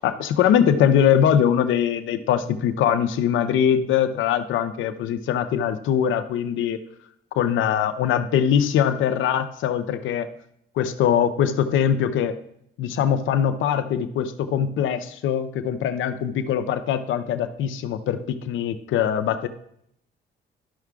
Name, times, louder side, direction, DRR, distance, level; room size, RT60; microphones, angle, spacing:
voice 1, 0.0-6.8 7.3-10.3 10.8-12.4 12.8-19.5, left 9 dB, 80° left, 10 dB, 0.7 m, -22 dB
12.5 x 5.8 x 2.3 m, 0.71 s
cardioid pair, 90°, 20 cm